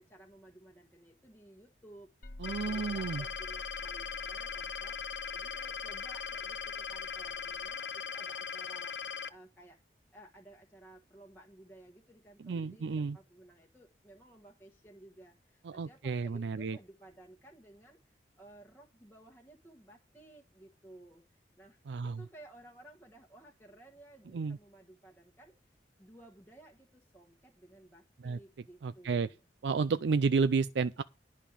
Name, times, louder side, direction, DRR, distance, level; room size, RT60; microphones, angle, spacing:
voice 1, 0.0-5.0 5.3-9.8 10.1-29.5, right 1 dB, 10° left, 1.3 m, -57 dB
sound 1, 2.2-7.8, left 1 dB, 50° left, 0.9 m, -51 dB
sound 2, 2.4-9.3, left 6 dB, 85° left, 0.7 m, -39 dB
voice 2, 2.4-3.2 12.4-13.2 15.6-16.8 21.9-22.2 24.3-24.6 28.2-28.4 28.8-29.3 29.6-31.0, right 4 dB, 85° right, 0.4 m, -31 dB
11.0 x 5.2 x 7.0 m
head